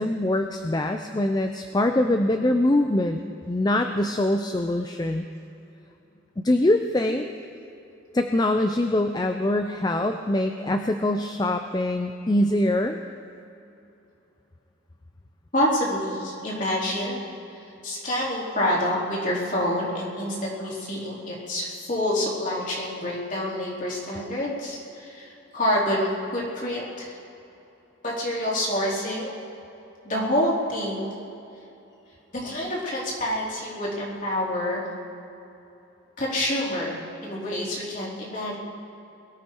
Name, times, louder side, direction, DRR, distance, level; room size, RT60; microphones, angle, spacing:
voice 1, 0.0-3.2 3.5-5.3 6.4-7.3 8.1-13.0, left 1 dB, 20° left, 6 dB, 0.4 m, -23 dB
voice 2, 15.5-17.2 17.8-27.2 28.0-29.3 30.0-31.1 32.3-34.8 36.2-38.6, left 1 dB, 40° left, -5 dB, 3.5 m, -27 dB
22.0 x 13.5 x 4.6 m, 2.8 s
head